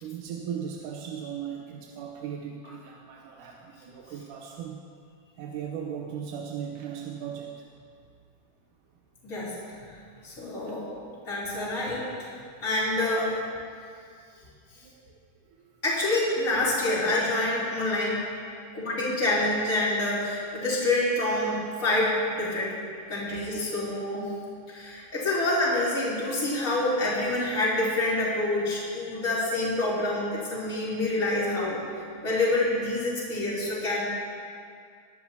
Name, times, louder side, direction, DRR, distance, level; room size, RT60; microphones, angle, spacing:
voice 1, 0.0-4.8 5.4-7.7 10.7-10.8 14.4-14.5 14.8-15.2 15.6-15.7 18.6-18.8 23.2-23.7, right 8 dB, 85° right, 0 dB, 2.3 m, -38 dB
voice 2, 9.2-9.5 10.2-10.9 11.2-12.1 12.6-13.3 15.8-18.2 18.7-22.7 23.1-24.3 24.7-31.8 32.2-34.0, left 2 dB, 25° left, -8 dB, 3.4 m, -27 dB
20.5 x 11.0 x 2.8 m, 2.3 s
omnidirectional pair, 3.6 m